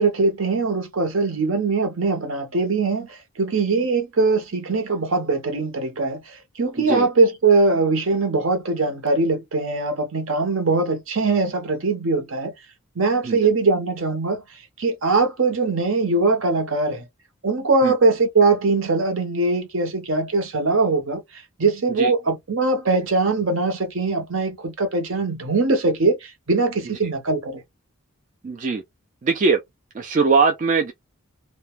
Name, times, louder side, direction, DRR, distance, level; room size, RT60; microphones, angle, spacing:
voice 1, 0.0-12.5 13.0-14.4 14.8-17.0 17.4-21.2 21.6-27.6, right 3 dB, 65° right, 0.8 m, -21 dB
voice 2, 28.4-28.8 29.2-29.6 29.9-30.9, right 4 dB, 35° right, 0.3 m, -20 dB
2.2 x 2.2 x 3.1 m
head